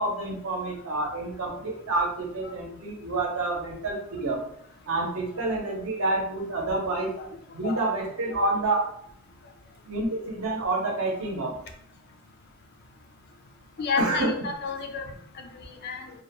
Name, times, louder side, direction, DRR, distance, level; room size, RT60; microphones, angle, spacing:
voice 1, 0.0-4.4 4.9-7.1 7.5-8.8 9.9-11.5 14.0-14.3, right 2 dB, 70° right, -1 dB, 0.7 m, -28 dB
voice 2, 13.8-15.0 15.4-16.1, left 4 dB, 45° left, 4 dB, 0.4 m, -31 dB
2.3 x 2.2 x 2.9 m, 0.69 s
head